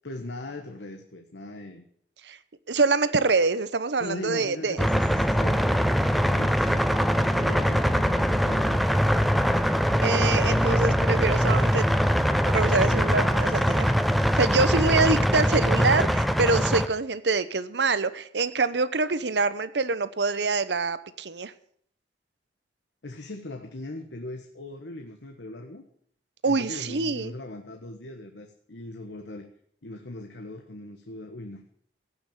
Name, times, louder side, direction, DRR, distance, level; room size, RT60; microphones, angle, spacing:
voice 1, 0.0-1.8 4.0-6.8 7.3-8.9 14.6-15.0 23.0-25.8 26.5-29.5 29.8-31.6, left 2 dB, 75° left, 5 dB, 1.3 m, -39 dB
voice 2, 2.7-4.8 9.7-11.9 12.5-21.5 26.4-27.3, right 3 dB, 70° right, 14 dB, 0.9 m, -25 dB
sound 1, 4.8-16.9, equal, ahead, 0.7 m, -22 dB
16.5 x 6.1 x 8.6 m, 0.63 s
head